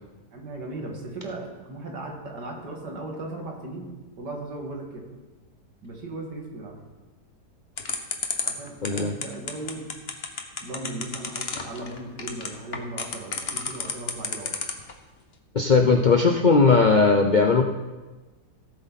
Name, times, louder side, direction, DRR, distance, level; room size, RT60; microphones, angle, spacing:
voice 1, 0.3-3.9 4.2-5.0 5.8-6.7 8.4-9.9 10.6-14.6 16.1-16.3, right 2 dB, 90° right, 0 dB, 2.7 m, -37 dB
sound 1, 7.8-14.9, left 5 dB, 40° left, 1.2 m, -30 dB
voice 2, 8.8-9.1 15.5-17.6, left 4 dB, 60° left, 4 dB, 0.4 m, -18 dB
17.0 x 7.8 x 4.1 m, 1.2 s
omnidirectional pair, 1.7 m